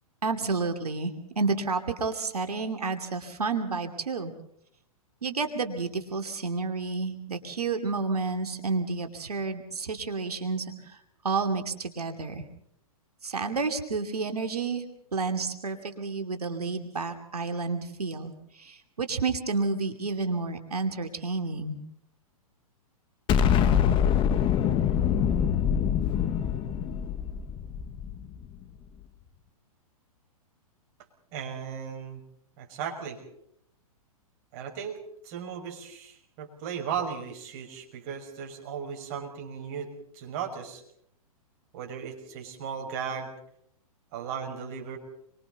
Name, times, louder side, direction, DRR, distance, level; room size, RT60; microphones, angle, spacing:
voice 1, 0.2-4.3 5.2-11.0 11.2-12.4 13.2-14.9 15.1-21.8, right 4 dB, 90° right, 6 dB, 2.7 m, -30 dB
Explosion, 23.3-28.5, left 8 dB, 25° left, 1.1 m, -24 dB
voice 2, 31.3-32.2 32.6-33.2 34.5-35.0 35.2-40.8 41.7-43.3 44.1-45.0, right 7 dB, 45° right, 3 dB, 5.9 m, -36 dB
29.0 x 24.0 x 4.1 m, 0.71 s
hypercardioid pair, 125°, 19 cm